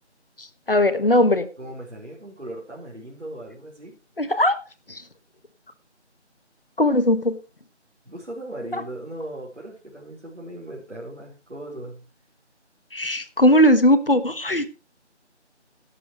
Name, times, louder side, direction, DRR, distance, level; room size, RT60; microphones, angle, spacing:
voice 1, 0.4-1.5 4.2-4.6 4.9-5.0 6.8-7.4 8.7-8.8 12.9-14.7, left 1 dB, 50° left, 12 dB, 1.5 m, -19 dB
voice 2, 1.6-4.0 8.0-12.0, right 1 dB, 75° right, -3 dB, 4.1 m, -38 dB
13.5 x 11.5 x 3.1 m, 0.31 s
figure-of-eight pair, 170°, 35 cm